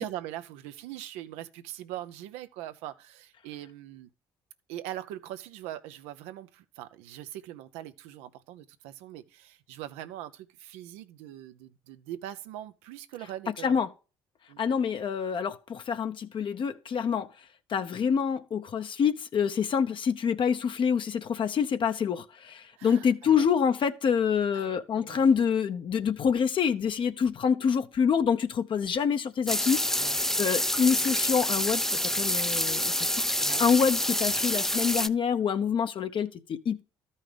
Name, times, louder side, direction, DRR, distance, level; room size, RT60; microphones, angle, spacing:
voice 1, 0.0-4.1 4.7-13.8 14.5-14.6 22.8-23.5 24.5-25.3 30.0-30.2 33.4-33.6, right 13 dB, 90° right, 0.6 m, -41 dB
voice 2, 14.6-17.3 17.7-36.8, left 7 dB, 50° left, 0.8 m, -27 dB
sound 1, 29.5-35.1, left 1 dB, 5° left, 0.5 m, -27 dB
13.0 x 5.5 x 3.3 m
supercardioid pair, 70°, 11 cm